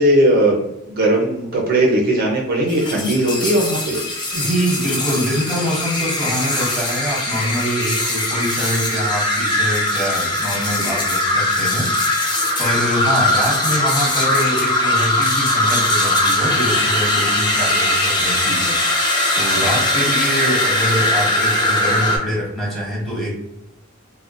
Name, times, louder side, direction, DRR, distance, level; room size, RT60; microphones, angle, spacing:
voice 1, 0.0-4.0, right 1 dB, 45° right, -1 dB, 0.5 m, -18 dB
sound 1, 2.7-22.2, left 1 dB, 20° left, 0.6 m, -20 dB
voice 2, 4.3-12.1 12.6-18.8 19.3-23.4, equal, ahead, -5 dB, 1.1 m, -24 dB
3.6 x 2.1 x 2.4 m, 0.87 s
head